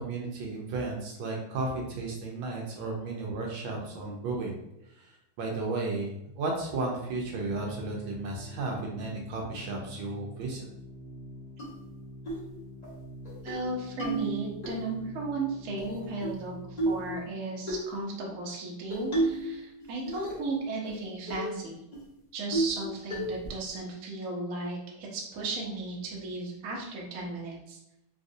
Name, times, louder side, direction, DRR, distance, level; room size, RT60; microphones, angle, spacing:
voice 1, 0.0-4.6 5.0-5.1 5.4-10.6, right 3 dB, 75° right, -1 dB, 1.3 m, -34 dB
Organ, 6.7-17.4, equal, 80° left, 1.6 m, -46 dB
sound 1, 11.6-11.7 12.3-12.5 12.8-12.9 13.3-13.6 14.0-14.7 15.8-16.4 16.8-17.1 17.7-17.9 18.9-19.5 19.8-20.5 20.8-20.9 21.3-21.5 21.9-22.0 22.5-22.8 23.1-23.5, right 2 dB, 35° left, 0.6 m, -31 dB
voice 2, 13.4-21.8 22.3-27.8, right 3 dB, 60° right, -2 dB, 0.9 m, -35 dB
3.9 x 2.5 x 2.6 m, 0.85 s
omnidirectional pair, 2.4 m